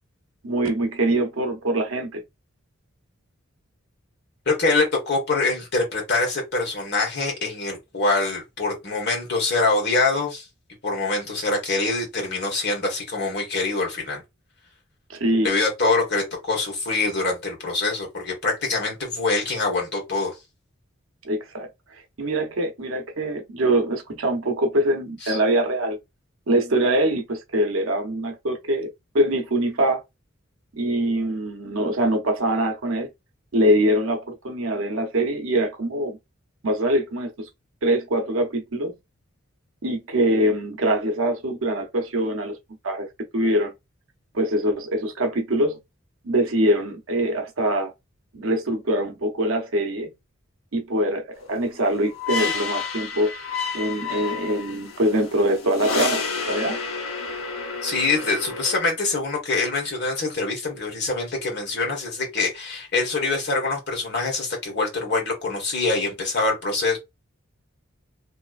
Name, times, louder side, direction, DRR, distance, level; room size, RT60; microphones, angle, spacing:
voice 1, 0.4-2.2 15.1-15.5 21.2-21.7 22.2-26.0 26.5-28.9 29.1-30.0 30.7-33.1 33.5-36.2 36.6-37.5 37.8-38.9 39.8-42.6 42.8-43.1 43.3-43.7 44.3-45.8 46.2-47.9 48.3-50.1 50.7-53.3 53.7-56.2 56.5-56.8, right 1 dB, 80° right, 0.8 m, -23 dB
voice 2, 4.4-10.5 10.8-14.2 15.4-20.3 25.2-25.4 57.8-67.0, left 3 dB, 55° left, 1.5 m, -24 dB
sound 1, 51.5-58.8, left 5 dB, 85° left, 0.8 m, -30 dB
3.2 x 2.9 x 2.4 m
head